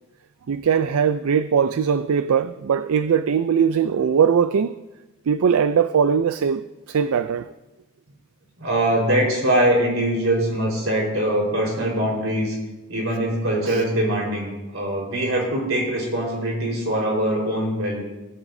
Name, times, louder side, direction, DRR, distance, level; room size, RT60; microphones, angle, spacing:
voice 1, 0.5-4.7 5.3-7.5 13.7-13.8, right 7 dB, 85° right, 0.4 m, -20 dB
voice 2, 8.6-12.5 12.9-18.0, right 1 dB, 65° right, 4.3 m, -22 dB
16.5 x 14.0 x 2.7 m
head